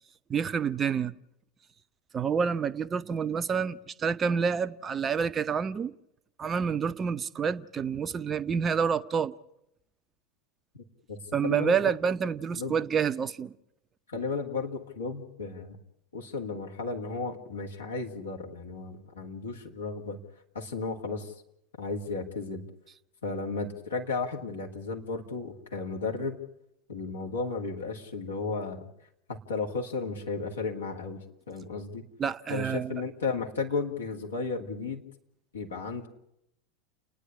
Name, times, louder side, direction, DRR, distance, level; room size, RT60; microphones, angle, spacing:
voice 1, 0.3-1.1 2.1-5.9 6.4-9.3 11.3-13.5 32.2-32.9, right 6 dB, 25° right, 0.7 m, -28 dB
voice 2, 11.4-11.9 12.5-12.8 14.1-15.8 16.1-20.2 20.5-21.3 21.8-22.6 23.2-26.4 26.9-28.8 29.3-31.2 31.5-32.0 32.5-35.0 35.5-36.1, left 4 dB, 70° left, 2.4 m, -34 dB
30.0 x 10.0 x 9.8 m
figure-of-eight pair, 80°, 0 cm